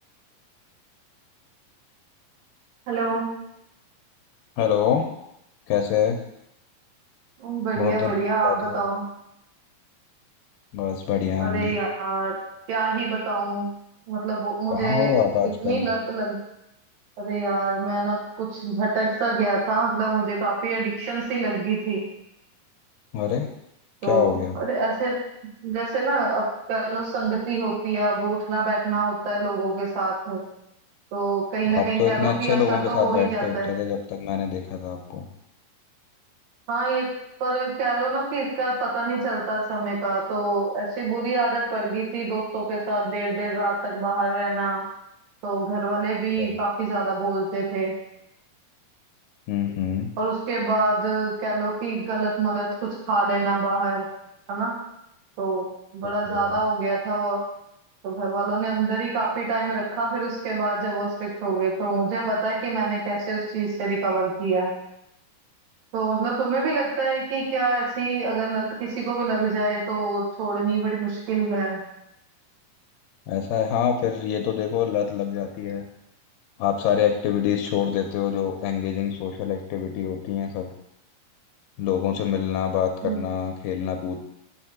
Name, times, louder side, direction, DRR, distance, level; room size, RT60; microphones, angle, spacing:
voice 1, 2.9-3.4 7.4-9.0 11.4-12.4 12.7-13.7 14.1-15.1 15.6-16.4 17.2-22.0 24.0-25.2 25.6-30.4 31.1-33.7 36.7-37.1 37.4-44.8 45.4-47.9 50.2-54.1 54.5-54.8 55.4-55.7 55.9-57.4 58.0-64.7 65.9-71.8 83.0-83.2, right 3 dB, 90° right, -3 dB, 3.4 m, -26 dB
voice 2, 4.6-5.1 5.7-6.2 7.8-8.1 8.4-8.8 10.7-11.7 14.7-15.9 23.1-23.5 24.0-24.6 31.7-35.3 46.4-46.5 49.5-50.1 56.0-56.6 73.3-75.8 76.6-80.7 81.8-84.2, left 9 dB, 85° left, 4 dB, 2.3 m, -25 dB
7.0 x 3.6 x 5.9 m, 0.81 s
omnidirectional pair, 3.9 m